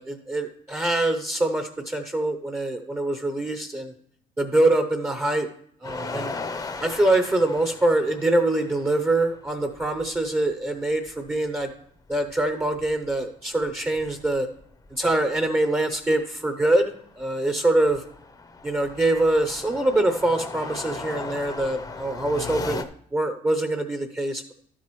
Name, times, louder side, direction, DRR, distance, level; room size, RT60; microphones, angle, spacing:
voice 1, 0.0-3.9 4.4-5.5 5.8-6.4 6.8-11.7 12.1-14.5 14.9-18.0 18.6-24.5, right 2 dB, 15° right, 7 dB, 0.7 m, -24 dB
sound 1, 5.8-10.2 10.5-10.6 10.9-13.2 13.5-15.4 15.9-16.2 16.6-22.8, left 4 dB, 20° left, 0.7 m, -37 dB
12.5 x 7.5 x 3.1 m, 0.66 s
cardioid pair, 110°, 17 cm